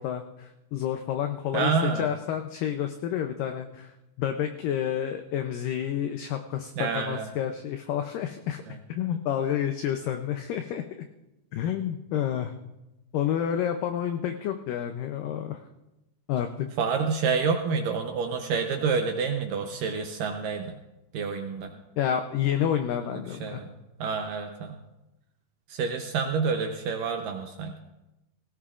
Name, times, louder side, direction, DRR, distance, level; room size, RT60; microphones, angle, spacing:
voice 1, 0.0-10.8 11.5-12.5 13.1-15.6 16.3-16.7 22.0-23.6, left 9 dB, 85° left, 6 dB, 1.9 m, -29 dB
voice 2, 1.5-2.1 6.8-7.3 8.7-8.8 16.8-20.7 21.1-21.7 23.4-23.7 24.0-24.8 25.7-27.8, right 5 dB, 75° right, 4 dB, 2.1 m, -28 dB
17.0 x 17.0 x 2.4 m, 0.97 s
omnidirectional pair, 4.7 m